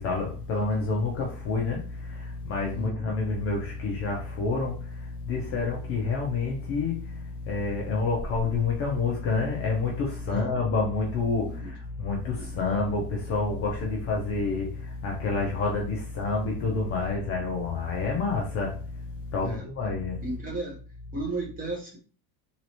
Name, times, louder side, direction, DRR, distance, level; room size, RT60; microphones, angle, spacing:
voice 1, 0.0-7.2 7.4-18.8 19.3-20.2, left 3 dB, 30° left, 0.5 m, -28 dB
voice 2, 11.4-11.7 12.4-12.5 17.2-17.3 19.4-19.7 20.2-20.8 21.1-22.0, right 2 dB, 15° right, 0.7 m, -35 dB
3.0 x 2.9 x 2.9 m
supercardioid pair, 150°, 50 cm